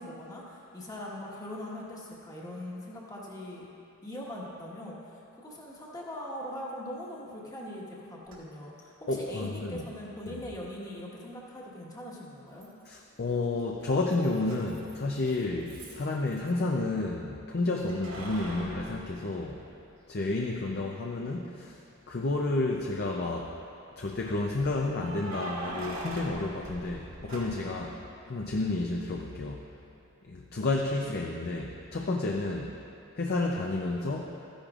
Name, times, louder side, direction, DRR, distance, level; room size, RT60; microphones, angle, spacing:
voice 1, 0.0-3.7 4.0-12.7, left 1 dB, 20° left, -4 dB, 1.4 m, -41 dB
Keys jangling, 8.3-8.4 10.3-10.4 12.6-13.1 13.4-16.6 17.9-20.0 20.5-20.6 22.4-22.9 24.9-27.8, right 1 dB, 75° right, 2.0 m, -42 dB
voice 2, 9.1-9.9 10.3-10.4 12.9-19.6 20.1-21.8 22.1-23.5 24.0-29.7 30.2-32.8 33.1-34.3, left 2 dB, 50° left, -1 dB, 0.6 m, -31 dB
13.5 x 10.5 x 2.5 m, 2.7 s
head